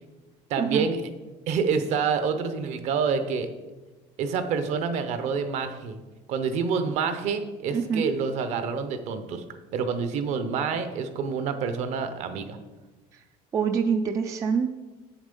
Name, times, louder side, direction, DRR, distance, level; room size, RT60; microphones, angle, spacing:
voice 1, 0.5-1.1 1.5-3.5 4.2-6.0 6.3-9.4 9.7-12.6, right 5 dB, 50° right, 10 dB, 0.8 m, -27 dB
voice 2, 7.7-8.1 13.5-14.7, right 6 dB, 20° right, 6 dB, 0.3 m, -25 dB
8.1 x 7.2 x 5.3 m, 1.2 s
cardioid pair, 175°, 14 cm